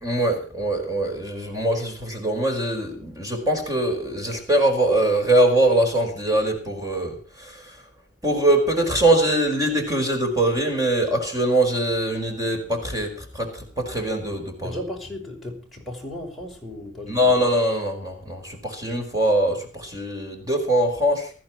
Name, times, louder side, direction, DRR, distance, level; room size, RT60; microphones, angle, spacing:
voice 1, 0.0-7.8 8.2-14.8 17.1-21.3, right 1 dB, 20° right, 5.0 m, -22 dB
voice 2, 14.6-17.3, left 1 dB, ahead, 5.8 m, -35 dB
20.0 x 14.0 x 4.5 m
head